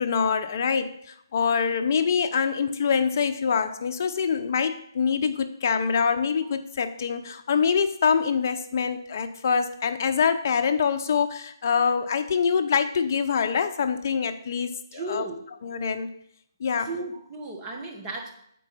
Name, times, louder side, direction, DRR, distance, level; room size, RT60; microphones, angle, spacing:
voice 1, 0.0-15.3 15.6-16.1 16.6-16.9, left 6 dB, 45° left, 8 dB, 0.7 m, -25 dB
voice 2, 14.9-15.5 16.8-18.3, right 2 dB, 20° right, 1 dB, 1.2 m, -34 dB
7.1 x 4.6 x 5.6 m, 0.71 s
figure-of-eight pair, 145°, 2 cm